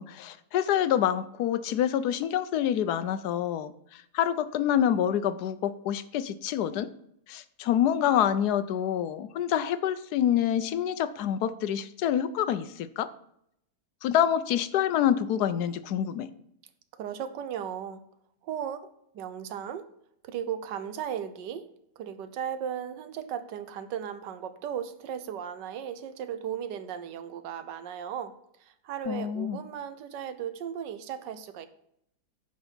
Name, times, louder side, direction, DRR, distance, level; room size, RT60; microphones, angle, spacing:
voice 1, 0.0-6.9 7.3-13.1 14.0-16.3 29.1-29.6, left 10 dB, 75° left, 14 dB, 1.1 m, -27 dB
voice 2, 17.0-18.0 18.4-18.9 19.1-19.8 20.2-21.7 22.0-28.3 28.6-31.7, right 9 dB, 90° right, 12 dB, 1.4 m, -36 dB
9.4 x 5.1 x 5.6 m, 0.74 s
omnidirectional pair, 1.8 m